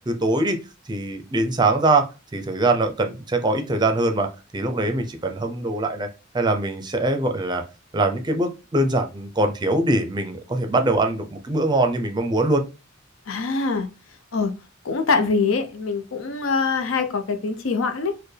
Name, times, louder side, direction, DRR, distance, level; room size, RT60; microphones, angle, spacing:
voice 1, 0.1-0.6 0.9-6.1 6.3-7.6 7.9-12.6, right 2 dB, 20° right, 0.5 m, -22 dB
voice 2, 13.3-13.9 14.3-14.5 14.8-18.1, left 4 dB, 90° left, 0.6 m, -23 dB
4.3 x 2.1 x 3.2 m
head